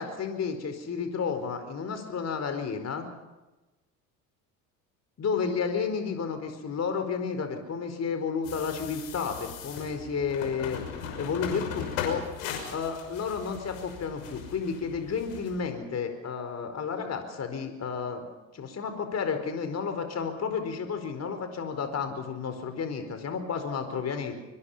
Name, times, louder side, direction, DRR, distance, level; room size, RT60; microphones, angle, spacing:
voice 1, 0.0-3.1 5.2-10.8 11.2-12.2 12.7-18.3 18.5-24.3, left 5 dB, 40° left, 7 dB, 4.7 m, -31 dB
sound 1, 8.4-15.6, left 7 dB, 70° left, 6.0 m, -38 dB
24.5 x 24.0 x 5.7 m, 1.1 s
hypercardioid pair, 70°, 41 cm